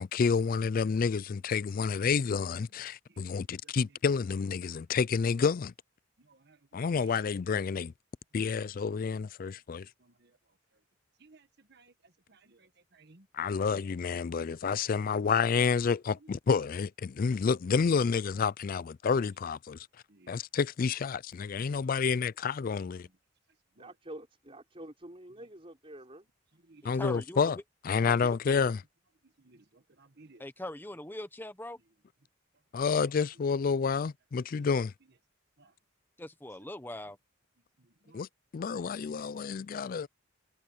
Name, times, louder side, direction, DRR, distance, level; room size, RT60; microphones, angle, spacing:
voice 1, 0.0-5.7 6.7-7.9 8.3-9.9 13.3-19.9 20.3-23.1 26.8-27.6 27.8-28.8 32.7-34.9 38.1-38.3 38.5-40.1, left 5 dB, 45° left, 0.3 m, -29 dB
voice 2, 3.1-3.7 6.2-7.1 9.8-10.3 11.2-11.9 12.3-13.3 20.1-20.3 23.8-23.9 26.7-26.9 29.4-30.4 35.6-35.7 37.8-38.3 38.9-39.3, right 3 dB, 55° right, 1.5 m, -60 dB
voice 3, 23.8-26.3, right 1 dB, 30° right, 5.2 m, -47 dB
voice 4, 27.0-27.5 30.4-31.8 36.2-37.2, left 1 dB, 10° left, 1.0 m, -41 dB
head